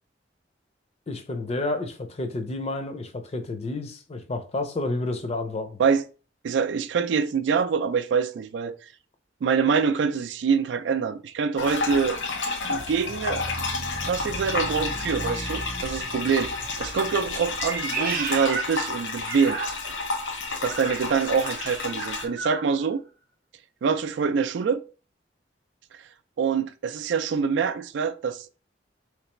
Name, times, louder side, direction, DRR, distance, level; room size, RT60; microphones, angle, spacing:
voice 1, 1.1-5.8, left 2 dB, 35° left, 0.5 m, -30 dB
voice 2, 6.4-8.8 9.4-12.2 12.7-13.5 14.0-16.5 16.8-19.6 20.6-23.0 23.8-24.8 26.4-28.5, right 6 dB, 90° right, 0.3 m, -25 dB
sound 1, 11.6-22.2, left 4 dB, 90° left, 0.7 m, -31 dB
sound 2, 12.7-17.7, right 1 dB, 20° right, 0.6 m, -38 dB
Meow, 17.5-20.1 20.7-22.7, right 4 dB, 55° right, 0.7 m, -33 dB
3.2 x 3.2 x 3.0 m
head